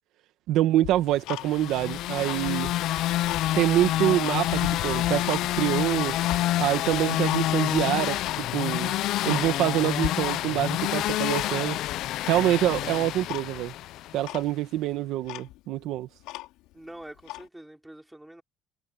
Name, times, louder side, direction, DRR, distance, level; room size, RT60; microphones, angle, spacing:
voice 1, 0.5-2.7 3.5-6.2 6.6-8.9 9.2-11.8 12.2-13.7 14.1-16.1, right 13 dB, 65° right, 1.5 m, -26 dB
Tick-tock, 0.8-1.8 2.2-3.5 3.9-5.5 5.8-6.4 6.9-7.4 7.7-7.8 8.2-8.4 8.8-8.9 9.2-9.8 10.0-10.7 10.9-11.7 12.3-12.8 13.3-13.5 13.8-13.9 14.2-14.5 15.0-15.1 15.2-16.7 17.2-17.5, left 17 dB, 80° left, 3.4 m, -37 dB
sound 1, 1.3-14.3, left 14 dB, 60° left, 0.5 m, -28 dB
voice 2, 2.5-2.9 16.7-18.4, right 1 dB, 5° right, 4.0 m, -46 dB
cardioid pair, 150°, 0 cm